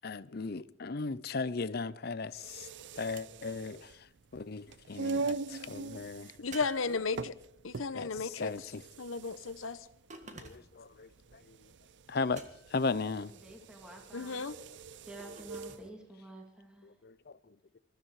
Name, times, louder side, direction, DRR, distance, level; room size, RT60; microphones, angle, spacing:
voice 1, 0.0-2.7 3.0-4.1 4.3-6.3 7.9-8.8 10.4-11.6 12.1-12.4 12.7-13.3 16.8-17.8, left 4 dB, 50° left, 0.6 m, -37 dB
sound 1, 2.3-15.9, right 4 dB, 60° right, 0.5 m, -42 dB
voice 2, 6.4-7.3 7.6-8.5 9.0-9.8 14.1-14.5, left 4 dB, 85° left, 0.9 m, -34 dB
sound 2, 6.5-7.6 10.1-10.9 12.3-12.9 15.2-15.9, right 3 dB, 35° right, 1.8 m, -50 dB
voice 3, 13.3-14.5 15.1-16.9, right 1 dB, 5° right, 2.5 m, -50 dB
21.5 x 13.5 x 4.8 m
head